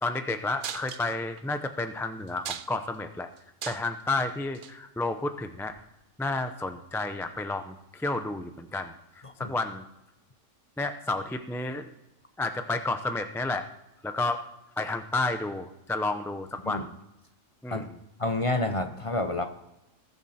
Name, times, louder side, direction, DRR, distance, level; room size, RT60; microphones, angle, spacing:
voice 1, 0.0-3.3 3.6-5.7 6.2-9.8 10.8-11.9 12.4-13.7 14.0-14.4 14.8-16.9 17.6-17.9, left 2 dB, 5° left, 8 dB, 0.5 m, -31 dB
sound 1, 0.6-1.4 1.9-2.0 2.3-3.0 3.4-4.0 4.5-4.7 5.7-5.8, right 9 dB, 55° right, 0.6 m, -38 dB
voice 2, 18.2-19.4, left 2 dB, 30° left, 7 dB, 0.8 m, -29 dB
19.5 x 7.2 x 4.3 m, 0.91 s
omnidirectional pair, 1.3 m